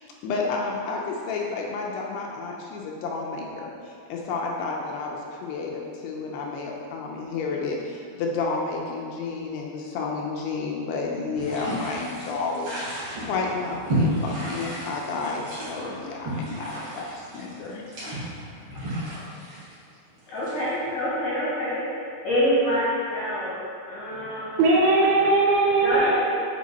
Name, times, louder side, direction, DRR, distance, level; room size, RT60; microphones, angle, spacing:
voice 1, 0.2-17.8, left 4 dB, 80° left, -1 dB, 2.6 m, -31 dB
sound 1, 11.4-20.9, equal, 50° right, 1.5 m, -32 dB
voice 2, 20.3-24.6 25.8-26.4, equal, 65° left, -9 dB, 2.0 m, -26 dB
voice 3, 24.1-26.1, right 3 dB, 75° right, -4 dB, 2.4 m, -20 dB
7.3 x 4.6 x 4.1 m, 2.5 s
omnidirectional pair, 4.9 m